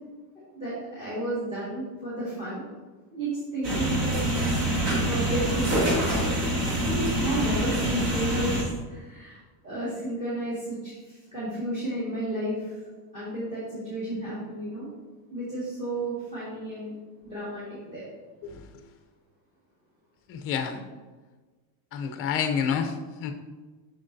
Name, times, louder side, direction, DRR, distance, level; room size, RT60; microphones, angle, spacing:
voice 1, 0.5-2.6 3.1-4.2 4.9-6.0 6.8-9.4 9.6-12.8 13.1-14.9 15.3-17.0 17.2-18.1, right 1 dB, 15° right, -8 dB, 1.9 m, -32 dB
sound 1, 3.6-8.6, right 1 dB, 45° right, 1.8 m, -26 dB
voice 2, 20.3-20.8 21.9-22.9 23.2-23.3, left 7 dB, 35° left, 7 dB, 0.6 m, -28 dB
7.5 x 6.5 x 2.6 m, 1.3 s
cardioid pair, 170°, 42 cm